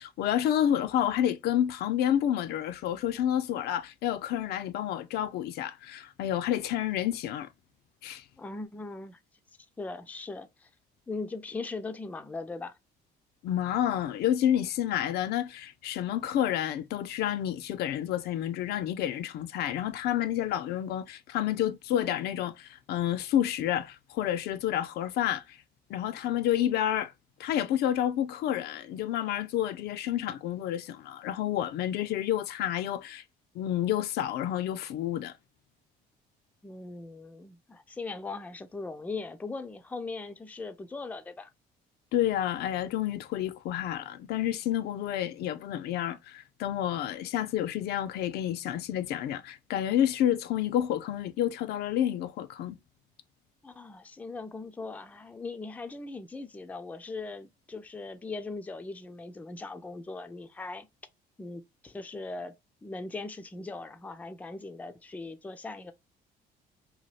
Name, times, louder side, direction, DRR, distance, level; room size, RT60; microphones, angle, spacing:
voice 1, 0.0-7.5 8.0-8.2 13.4-25.6 25.9-27.1 27.4-33.2 33.6-35.3 42.1-52.8, left 11 dB, 70° left, 0.4 m, -29 dB
voice 2, 8.4-9.2 9.8-10.7 11.1-12.8 36.6-41.5 53.6-60.9 61.4-62.5 62.8-65.9, left 3 dB, 10° left, 0.4 m, -39 dB
2.8 x 2.3 x 3.0 m
cardioid pair, 110°, 17 cm